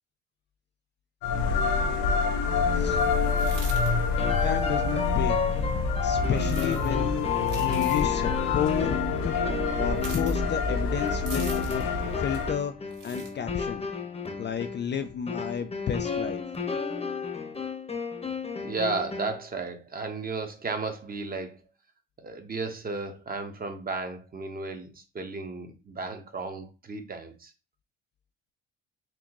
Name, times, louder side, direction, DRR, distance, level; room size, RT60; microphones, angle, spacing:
sound 1, 1.2-12.5, left 5 dB, 80° left, 0.8 m, -26 dB
sound 2, 3.3-3.9 6.4-6.9 7.4-8.1 10.0-10.4 11.3-11.9 12.9-13.3, right 4 dB, 60° right, 1.7 m, -42 dB
sound 3, 4.2-19.5, left 5 dB, 20° left, 1.0 m, -34 dB
voice 1, 4.4-5.4 6.0-7.3 7.5-8.9 9.2-9.4 9.8-11.9 12.2-13.9 14.4-16.4, left 8 dB, 35° left, 0.4 m, -31 dB
voice 2, 18.6-21.6 22.2-27.5, right 3 dB, 25° right, 1.0 m, -34 dB
4.4 x 2.7 x 2.9 m
supercardioid pair, 80°, 33 cm